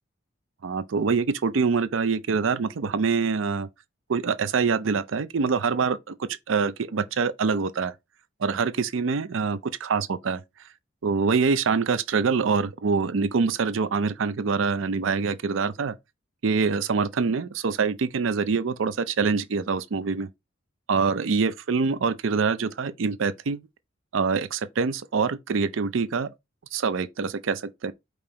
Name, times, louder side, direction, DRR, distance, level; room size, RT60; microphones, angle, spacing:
voice 1, 0.6-3.7 4.1-7.9 8.4-10.4 11.0-15.9 16.4-20.3 20.9-23.6 24.1-26.3 26.7-27.9, right 5 dB, 75° right, 0.5 m, -25 dB
5.2 x 3.0 x 2.9 m
head